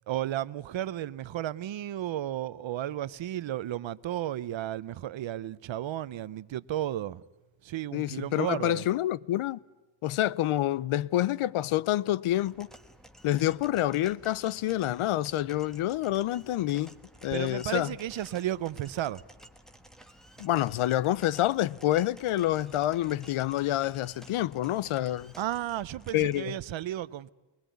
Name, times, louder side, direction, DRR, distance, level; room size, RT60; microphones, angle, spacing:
voice 1, 0.1-7.2 7.6-8.9 17.3-19.2 25.4-27.3, right 12 dB, 70° right, 0.7 m, -33 dB
voice 2, 7.9-9.6 10.0-12.7 13.2-16.9 17.2-17.9 20.4-25.3 26.1-26.5, left 14 dB, 90° left, 0.7 m, -27 dB
sound 1, 12.2-26.4, equal, ahead, 1.4 m, -54 dB
22.0 x 20.5 x 9.3 m
wide cardioid pair, 125°, 48 cm